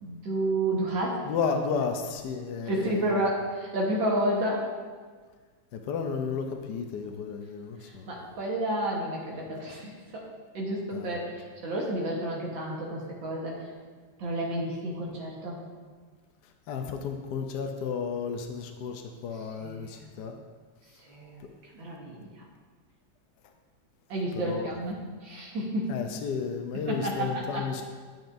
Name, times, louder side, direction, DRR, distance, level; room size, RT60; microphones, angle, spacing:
voice 1, 0.0-1.2 2.7-4.7 8.1-10.3 10.5-13.6 14.2-15.6 19.6-20.1 21.1-21.4 21.7-22.3 24.1-25.9 26.9-27.6, right 1 dB, 80° right, -3 dB, 2.0 m, -30 dB
voice 2, 1.2-3.3 5.7-8.1 10.9-11.2 16.4-20.4 21.4-21.5 24.4-24.8 25.9-27.8, left 5 dB, 70° left, 4 dB, 1.2 m, -33 dB
9.2 x 9.2 x 2.6 m, 1.5 s
omnidirectional pair, 2.1 m